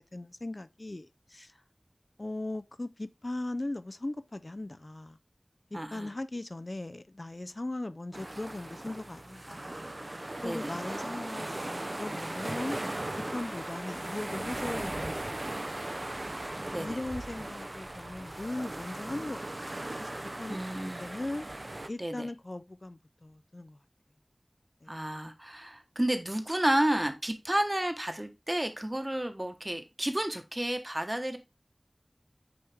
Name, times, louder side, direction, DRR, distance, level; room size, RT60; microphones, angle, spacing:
voice 1, 0.0-1.6 2.2-5.2 5.7-9.9 10.4-12.8 13.3-16.1 16.8-21.5 21.9-23.8 24.8-25.0, left 2 dB, 50° left, 0.4 m, -39 dB
voice 2, 5.7-6.1 10.4-10.7 16.7-17.0 20.5-21.0 22.0-22.3 24.9-31.4, right 1 dB, 25° right, 1.1 m, -31 dB
sound 1, 8.1-21.9, right 1 dB, 45° right, 0.5 m, -38 dB
8.5 x 3.2 x 3.4 m
wide cardioid pair, 50°, 0 cm